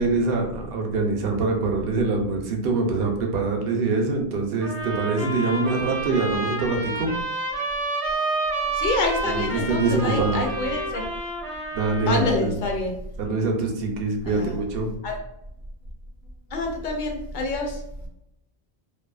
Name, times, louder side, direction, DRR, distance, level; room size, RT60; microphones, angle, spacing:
voice 1, 0.0-7.1 9.2-10.4 11.7-12.6 13.2-14.9, right 3 dB, 65° right, 2 dB, 0.7 m, -24 dB
sound 1, 4.6-12.4, right 2 dB, 35° right, 0.8 m, -29 dB
voice 2, 8.7-11.1 12.1-12.9 14.2-14.6 15.0-15.2 16.5-17.8, left 2 dB, 55° left, 1 dB, 0.6 m, -27 dB
2.5 x 2.3 x 2.3 m, 0.79 s
omnidirectional pair, 1.1 m